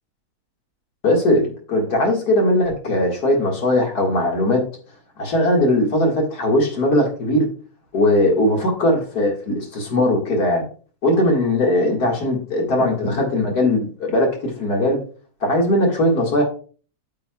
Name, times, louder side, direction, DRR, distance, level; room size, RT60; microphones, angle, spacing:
voice 1, 1.0-4.6 5.2-7.5 7.9-10.7 11.0-15.0 15.4-16.4, left 1 dB, 85° left, 0 dB, 2.4 m, -19 dB
8.9 x 6.9 x 2.3 m, 0.39 s
omnidirectional pair, 1.6 m